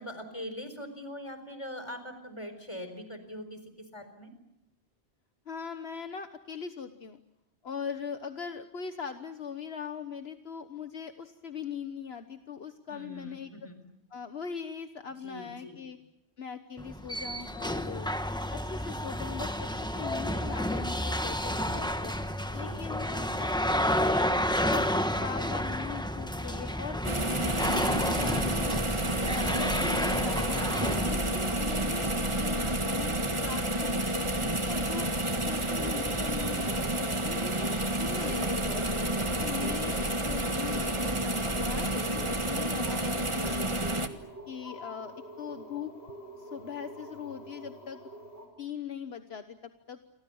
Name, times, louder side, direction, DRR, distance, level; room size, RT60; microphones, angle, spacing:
voice 1, 0.0-4.3 12.9-13.8 15.2-15.8 22.4-23.0 34.9-35.5 39.5-39.7, equal, 25° left, 9 dB, 4.3 m, -43 dB
voice 2, 5.4-7.2 7.6-13.7 14.1-16.0 16.4-18.1 18.5-22.1 22.5-24.3 24.6-24.9 25.1-28.8 29.3-35.0 35.4-38.9 39.4-44.0 44.5-45.9 46.4-48.0 48.6-50.0, left 7 dB, 70° left, 8 dB, 1.5 m, -41 dB
sound 1, 16.8-31.9, equal, 5° left, 1.3 m, -31 dB
sound 2, 27.0-44.1, right 1 dB, 30° right, 1.6 m, -30 dB
sound 3, 34.9-48.5, right 1 dB, 75° right, 6.3 m, -47 dB
29.0 x 24.5 x 7.1 m, 0.82 s
omnidirectional pair, 1.1 m